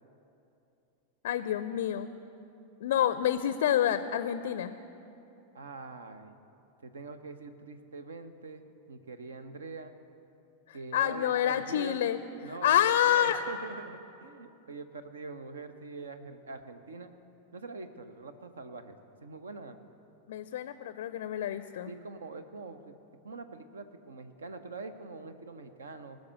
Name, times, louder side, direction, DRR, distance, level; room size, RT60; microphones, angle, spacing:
voice 1, 1.2-2.1 2.8-4.7 10.7-12.2 12.6-13.4 20.3-21.9, left 10 dB, 55° left, 12 dB, 0.4 m, -28 dB
voice 2, 5.5-6.4 6.8-9.9 10.7-12.0 12.4-17.1 17.5-19.0 19.2-19.8 21.8-22.9 23.2-26.2, right 3 dB, 70° right, 10 dB, 0.8 m, -44 dB
19.0 x 6.5 x 8.1 m, 2.8 s
figure-of-eight pair, 90°, 0 cm